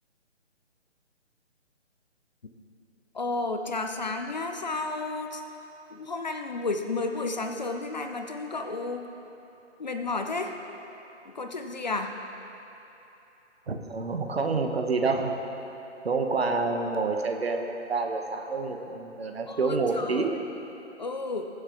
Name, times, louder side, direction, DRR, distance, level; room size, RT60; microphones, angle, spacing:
voice 1, 3.1-5.4 5.9-9.0 9.8-10.5 11.2-12.1 19.5-20.4 21.0-21.5, left 3 dB, 35° left, 5 dB, 0.7 m, -32 dB
voice 2, 13.7-15.3 16.0-20.4, right 4 dB, 55° right, 3 dB, 1.3 m, -28 dB
21.5 x 7.3 x 3.6 m, 3.0 s
figure-of-eight pair, 150°, 36 cm